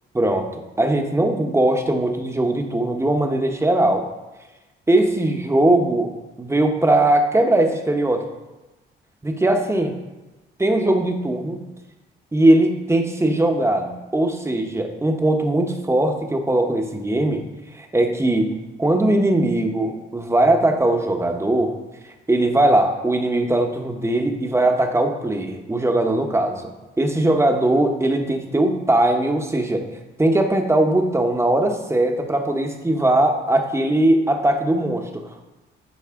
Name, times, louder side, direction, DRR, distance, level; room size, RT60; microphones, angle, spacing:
voice 1, 0.1-4.1 4.9-6.1 6.4-8.3 9.2-9.9 10.6-11.6 12.3-17.4 17.7-21.8 22.3-29.9 30.2-35.5, right 1 dB, 15° right, 4 dB, 1.1 m, -20 dB
10.5 x 4.6 x 3.7 m, 1.1 s
cardioid pair, 90°, 20 cm